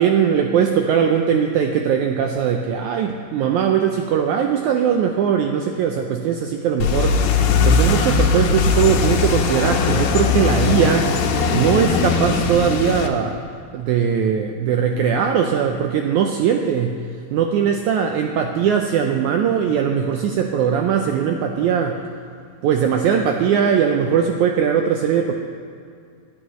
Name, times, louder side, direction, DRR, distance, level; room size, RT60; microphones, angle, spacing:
voice 1, 0.0-7.2 7.7-13.4 13.7-17.0 17.3-22.0 22.6-25.3, right 8 dB, 90° right, 4 dB, 1.7 m, -20 dB
sound 1, 6.8-13.1, left 5 dB, 85° left, 2.7 m, -19 dB
20.0 x 11.0 x 3.1 m, 2.3 s
omnidirectional pair, 4.1 m